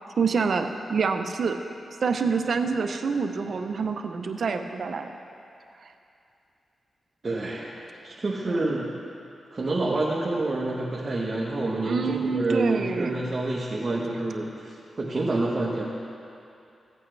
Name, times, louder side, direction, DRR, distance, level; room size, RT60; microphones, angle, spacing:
voice 1, 0.2-1.6 2.0-5.1 8.5-8.7 11.8-13.3, right 5 dB, 65° right, 5 dB, 0.7 m, -27 dB
voice 2, 7.2-8.9 9.5-15.9, right 2 dB, 40° right, -4 dB, 1.1 m, -28 dB
15.5 x 8.4 x 3.3 m, 2.6 s
cardioid pair, 80°, 0 cm